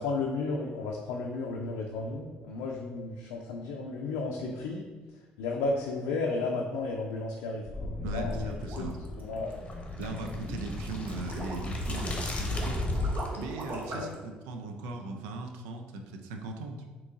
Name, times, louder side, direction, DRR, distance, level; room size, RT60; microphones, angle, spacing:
voice 1, 0.0-4.9 5.4-9.5 10.0-10.1 13.9-14.1, left 3 dB, 85° left, -1 dB, 0.4 m, -33 dB
sound 1, 7.7-13.4, left 2 dB, 30° left, 0.8 m, -35 dB
voice 2, 8.0-9.0 10.0-12.9 13.4-16.9, right 3 dB, 85° right, 4 dB, 0.4 m, -39 dB
sound 2, 8.2-14.2, right 2 dB, 50° right, 0.9 m, -41 dB
3.8 x 2.9 x 3.6 m, 1.3 s
supercardioid pair, 65°, 4 cm